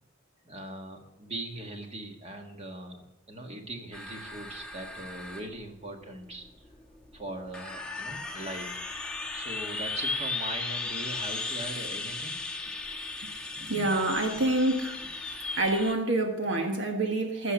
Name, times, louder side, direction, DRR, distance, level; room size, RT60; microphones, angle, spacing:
voice 1, 0.4-6.7 7.1-8.8 9.1-12.4, right 1 dB, 30° right, 3 dB, 1.6 m, -40 dB
sound 1, 3.9-15.9, left 3 dB, 5° left, 1.2 m, -36 dB
voice 2, 13.6-17.5, right 2 dB, 55° right, 4 dB, 1.3 m, -28 dB
15.0 x 6.6 x 7.3 m, 0.86 s
head